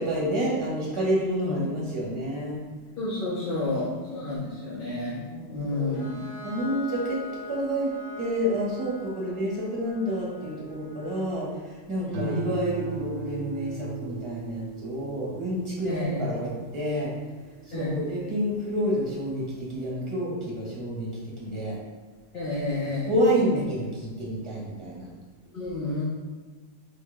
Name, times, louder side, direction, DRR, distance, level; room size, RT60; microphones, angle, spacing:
voice 1, 0.0-2.6 3.5-3.6 4.0-4.4 5.0-5.9 6.4-7.2 7.5-7.9 8.2-17.1 17.7-21.1 21.4-21.7 22.8-25.1, equal, 25° right, -5 dB, 1.3 m, -29 dB
voice 2, 3.0-5.2 5.5-6.2 12.0-12.5 15.8-16.3 17.7-18.0 22.3-23.1 25.5-26.0, left 2 dB, 50° left, -8 dB, 0.9 m, -30 dB
Bowed string instrument, 5.9-11.5, left 3 dB, 80° left, 1.6 m, -43 dB
sound 1, 12.1-18.7 19.1-19.6, right 9 dB, 90° right, 1.0 m, -39 dB
4.5 x 3.1 x 3.5 m, 1.4 s
omnidirectional pair, 1.3 m